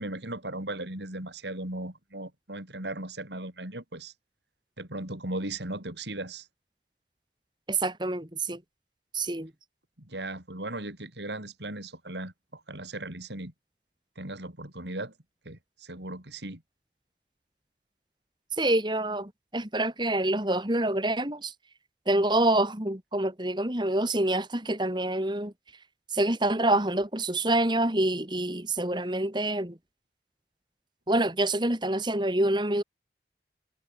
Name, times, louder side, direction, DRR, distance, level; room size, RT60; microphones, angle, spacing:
voice 1, 0.0-4.1 4.8-6.5 10.0-13.5 14.2-15.1 15.4-16.6, right 2 dB, 75° right, 5.9 m, -37 dB
voice 2, 7.7-8.6 9.1-9.5 18.6-21.5 22.1-25.5 26.1-29.8 31.1-32.8, right 1 dB, 25° right, 2.7 m, -26 dB
head